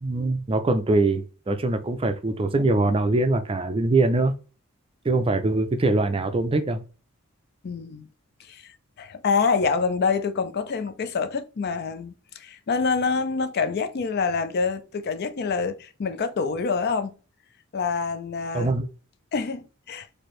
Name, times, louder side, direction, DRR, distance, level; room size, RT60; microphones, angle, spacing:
voice 1, 0.0-4.4 5.0-6.8 18.5-18.9, right 2 dB, 25° right, 0.4 m, -23 dB
voice 2, 7.6-8.1 8.5-8.6 9.0-17.2 17.7-18.7 19.3-20.1, left 5 dB, 45° left, 0.4 m, -26 dB
4.3 x 2.7 x 3.1 m
head